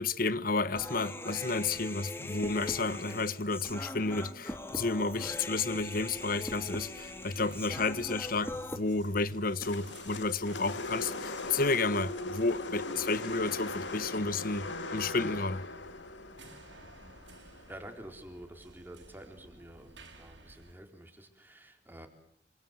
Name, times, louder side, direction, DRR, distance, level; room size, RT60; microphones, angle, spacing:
voice 1, 0.0-15.6, left 3 dB, 50° left, 1.2 m, -31 dB
Human voice, 0.7-8.8, left 1 dB, 15° left, 2.0 m, -41 dB
sound 1, 4.9-20.7, right 2 dB, 85° right, 6.1 m, -56 dB
sound 2, 9.6-17.9, left 2 dB, 85° left, 2.0 m, -39 dB
voice 2, 17.4-22.1, right 1 dB, 10° right, 4.3 m, -49 dB
27.5 x 25.5 x 7.9 m
head